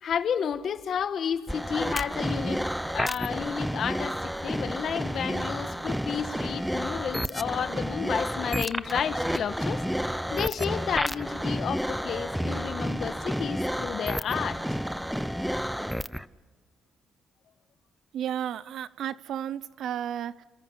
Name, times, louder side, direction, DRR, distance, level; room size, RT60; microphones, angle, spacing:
voice 1, 0.0-14.6, left 8 dB, 60° left, 1.5 m, -31 dB
sound 1, 1.5-16.3, equal, ahead, 0.7 m, -30 dB
voice 2, 18.1-20.4, right 10 dB, 75° right, 0.8 m, -33 dB
28.5 x 28.5 x 5.8 m
cardioid pair, 90°, 0 cm